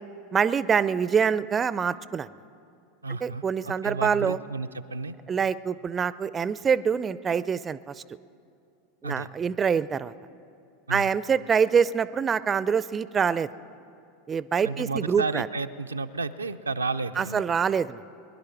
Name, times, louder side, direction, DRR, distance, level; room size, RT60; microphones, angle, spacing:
voice 1, 0.3-2.3 3.2-4.4 5.3-7.9 9.0-10.1 10.9-13.5 14.3-15.5 17.2-18.0, right 6 dB, 25° right, 17 dB, 0.4 m, -25 dB
voice 2, 3.0-5.2 9.0-9.3 10.9-11.1 14.6-17.4, right 3 dB, 90° right, 8 dB, 0.4 m, -32 dB
22.0 x 10.5 x 5.7 m, 2.5 s
figure-of-eight pair, 85°, 0 cm